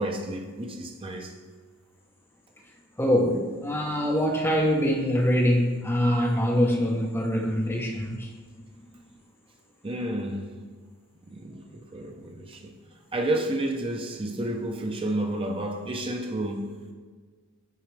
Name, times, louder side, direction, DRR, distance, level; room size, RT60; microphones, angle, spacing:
voice 1, 0.0-1.3 9.8-10.6 11.3-12.7 13.1-16.7, right 1 dB, 25° right, 0.6 m, -31 dB
voice 2, 3.0-8.3, equal, 10° left, 0.8 m, -24 dB
9.3 x 3.9 x 3.3 m
head